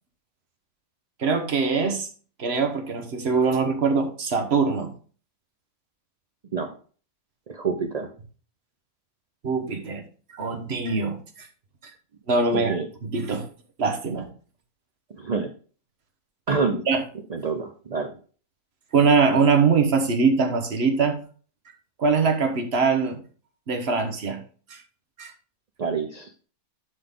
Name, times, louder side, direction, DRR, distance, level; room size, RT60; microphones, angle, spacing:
voice 1, 1.2-2.1 2.4-4.9 9.4-10.0 10.3-11.5 12.3-12.7 13.0-13.5 13.8-14.3 16.9-17.0 18.9-21.2 22.0-23.2 23.7-24.4 24.7-24.8 25.2-25.3, right 4 dB, 45° right, 5 dB, 1.4 m, -22 dB
voice 2, 7.5-8.1 12.5-12.9 15.1-15.5 16.5-16.8 17.3-18.1 25.8-26.3, right 5 dB, 65° right, 7 dB, 0.4 m, -27 dB
11.5 x 4.0 x 3.7 m, 0.41 s
omnidirectional pair, 1.5 m